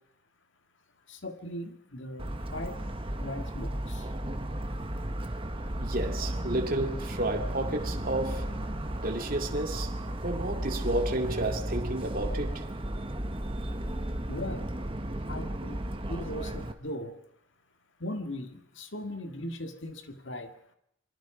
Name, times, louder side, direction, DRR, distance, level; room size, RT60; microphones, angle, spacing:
voice 1, 1.1-2.8 3.2-4.1 14.3-14.7 15.3-15.8 16.1-17.2 18.0-20.5, left 1 dB, 65° left, 1.9 m, -38 dB
Motor vehicle (road) / Siren, 2.2-16.7, right 1 dB, 25° right, 1.4 m, -34 dB
voice 2, 5.8-8.5 9.0-9.9 10.2-12.6, right 2 dB, 45° right, 2.4 m, -31 dB
27.0 x 23.5 x 5.0 m
head